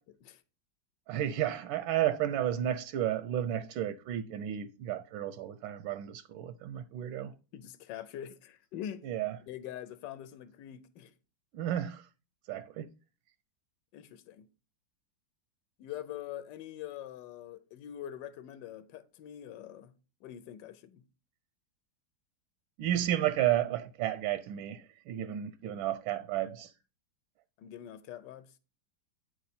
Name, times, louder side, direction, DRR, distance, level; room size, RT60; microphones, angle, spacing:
voice 1, 1.1-7.3 9.0-9.4 11.5-12.1 12.5-12.9 22.8-26.7, right 12 dB, 85° right, 1.4 m, -32 dB
voice 2, 7.5-9.1 9.5-11.1 13.9-14.5 15.8-19.9 20.2-21.0 27.6-28.5, left 11 dB, 75° left, 1.3 m, -44 dB
9.5 x 4.6 x 4.2 m
omnidirectional pair, 2.1 m